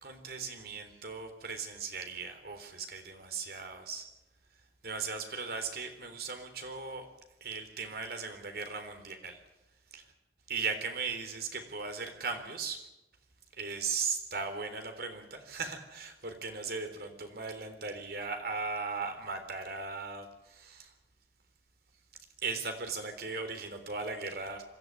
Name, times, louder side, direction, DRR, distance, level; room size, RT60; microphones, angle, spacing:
voice 1, 0.0-4.1 4.8-7.1 7.4-9.4 9.9-10.0 10.5-12.8 13.6-20.9 22.4-24.6, right 4 dB, 60° right, 6 dB, 3.8 m, -38 dB
25.5 x 13.5 x 9.5 m, 0.93 s
head